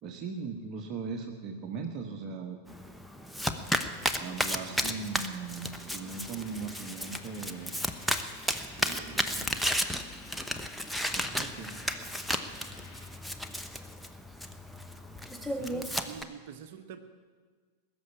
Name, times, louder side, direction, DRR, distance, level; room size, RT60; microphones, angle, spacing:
voice 1, 0.0-2.6 4.2-7.7 8.8-9.6 11.1-11.7, right 5 dB, 35° right, 3 dB, 1.2 m, -39 dB
Domestic sounds home sounds, 2.7-16.2, equal, ahead, 0.9 m, -34 dB
sound 1, 4.9-13.0, left 3 dB, 30° left, 3.1 m, -54 dB
voice 2, 15.4-17.0, right 8 dB, 50° right, 8 dB, 0.9 m, -45 dB
19.5 x 7.1 x 9.6 m, 1.5 s
figure-of-eight pair, 90°, 0 cm